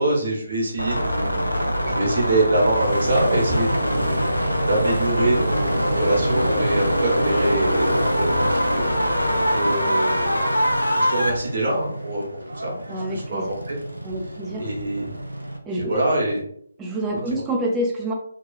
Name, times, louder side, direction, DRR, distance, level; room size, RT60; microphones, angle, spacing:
voice 1, 0.0-4.3 4.7-10.5 10.9-12.8 13.1-13.8 14.6-15.1 15.8-16.4, right 2 dB, 55° right, -2 dB, 1.0 m, -25 dB
sound 1, 0.8-11.3, equal, 85° left, 0.4 m, -23 dB
Motorcycle, 2.6-15.6, right 1 dB, 75° right, 0.5 m, -29 dB
voice 2, 12.9-13.5 14.0-14.6 15.6-16.0 16.8-18.1, right 1 dB, 10° right, -1 dB, 0.5 m, -27 dB
2.9 x 2.3 x 2.3 m, 0.66 s
figure-of-eight pair, 145°, 0 cm